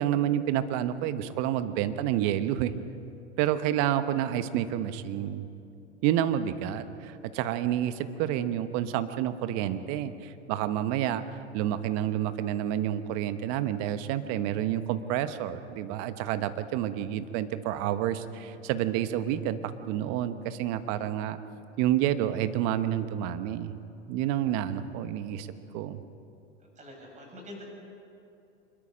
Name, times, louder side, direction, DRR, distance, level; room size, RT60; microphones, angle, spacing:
voice 1, 0.0-2.7 3.4-5.5 6.0-21.4 21.8-23.8 24.1-25.5 25.7-26.0, right 11 dB, 45° right, 11 dB, 1.2 m, -29 dB
voice 2, 26.6-27.6, left 1 dB, 20° right, 0 dB, 6.9 m, -46 dB
25.5 x 22.0 x 5.3 m, 2.6 s
hypercardioid pair, 100°, 37 cm